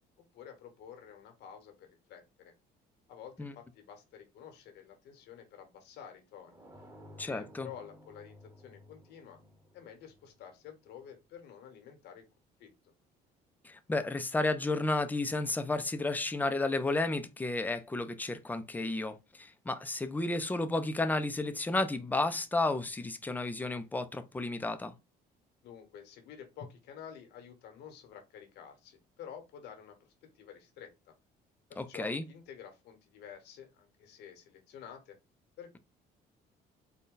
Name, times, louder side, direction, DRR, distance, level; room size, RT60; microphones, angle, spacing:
voice 1, 0.3-2.5 3.1-6.6 7.2-9.4 9.7-12.3 12.6-12.9 25.6-31.1 31.7-35.2 35.6-35.8, left 8 dB, 80° left, 1.3 m, -50 dB
sound 1, 6.4-11.2, left 1 dB, 20° right, 1.1 m, -56 dB
voice 2, 7.2-7.7 13.6-24.9 31.8-32.2, left 2 dB, 10° left, 0.5 m, -32 dB
4.0 x 2.2 x 3.8 m
cardioid pair, 110°, 17 cm